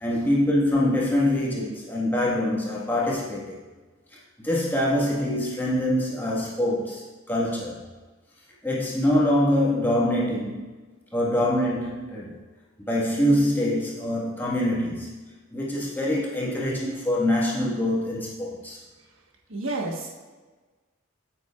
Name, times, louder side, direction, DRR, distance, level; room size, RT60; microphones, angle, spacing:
voice 1, 0.0-3.6 4.4-7.8 8.6-10.7 11.1-12.4 12.8-15.1 15.5-18.8, left 1 dB, 10° left, -6 dB, 1.5 m, -24 dB
voice 2, 19.5-20.1, right 2 dB, 70° right, 0 dB, 1.3 m, -30 dB
9.0 x 7.8 x 2.4 m, 1.3 s
head